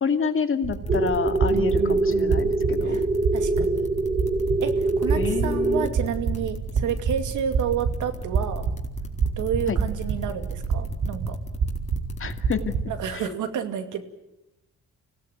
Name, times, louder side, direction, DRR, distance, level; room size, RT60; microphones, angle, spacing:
voice 1, 0.0-3.0 5.1-5.9 9.7-9.8 12.2-12.8 13.1-13.3, left 6 dB, 45° left, 7 dB, 2.3 m, -28 dB
sound 1, 0.6-13.1, right 5 dB, 65° right, 6.0 m, -28 dB
sound 2, 0.7-12.7, left 2 dB, 25° left, 4.0 m, -38 dB
sound 3, 0.9-5.9, right 2 dB, 25° right, 2.4 m, -24 dB
voice 2, 1.5-2.4 2.8-3.0 3.3-3.9 4.6-8.7 9.4-11.4 12.9-14.0, right 8 dB, 80° right, 8 dB, 2.5 m, -30 dB
25.0 x 17.0 x 9.3 m, 0.91 s
cardioid pair, 90°, 30 cm